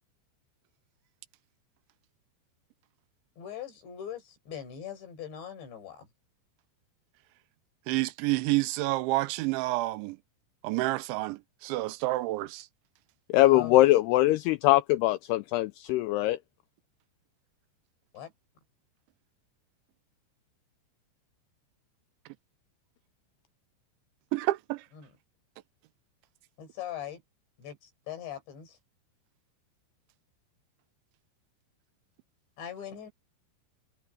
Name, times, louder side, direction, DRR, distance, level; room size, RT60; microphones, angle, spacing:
voice 1, 3.4-6.1 13.4-13.8 18.1-18.3 24.9-25.1 26.6-27.2 27.6-28.8 32.6-33.1, left 9 dB, 70° left, 7.4 m, -41 dB
voice 2, 7.9-10.2 10.6-12.7 24.3-24.9, right 20 dB, 90° right, 3.1 m, -29 dB
voice 3, 13.3-16.4, left 16 dB, 85° left, 2.3 m, -22 dB
omnidirectional pair, 5.3 m